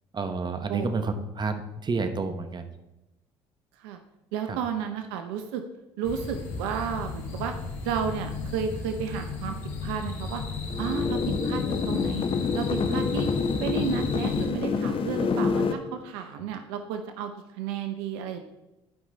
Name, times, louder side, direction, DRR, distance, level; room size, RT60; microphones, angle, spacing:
voice 1, 0.1-2.7 4.5-4.6, right 4 dB, 35° right, 8 dB, 1.2 m, -30 dB
voice 2, 0.7-1.3 3.8-4.0 4.3-5.6 6.0-7.5 7.8-9.5 9.8-10.4 10.8-12.2 12.5-13.3 13.6-18.4, right 7 dB, 80° right, 6 dB, 0.7 m, -32 dB
sound 1, 6.0-14.5, left 3 dB, 70° left, 1.9 m, -34 dB
sound 2, 10.7-15.7, left 5 dB, 45° left, 0.9 m, -27 dB
11.5 x 5.3 x 4.0 m, 0.97 s
hypercardioid pair, 60°, 13 cm